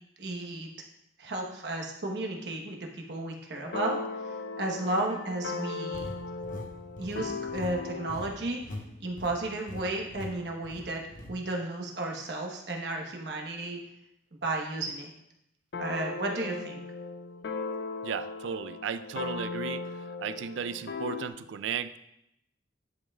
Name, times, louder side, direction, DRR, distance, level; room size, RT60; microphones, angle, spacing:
voice 1, 0.2-0.7 1.2-6.1 7.0-8.6 9.0-11.0 11.3-13.8 14.4-15.1 15.8-16.8, right 2 dB, 65° right, 1 dB, 1.1 m, -33 dB
sound 1, 3.5-8.2 15.7-21.3, left 4 dB, 65° left, 0.4 m, -37 dB
sound 2, 3.7-9.0, left 2 dB, 85° left, 0.9 m, -51 dB
sound 3, 5.9-8.8 9.1-9.4 9.7-9.8 10.1-10.3 10.6-11.3, left 1 dB, 45° left, 0.9 m, -42 dB
voice 2, 18.0-19.8 20.2-22.0, right 7 dB, 85° right, 13 dB, 0.4 m, -35 dB
10.0 x 5.4 x 2.3 m, 0.80 s
head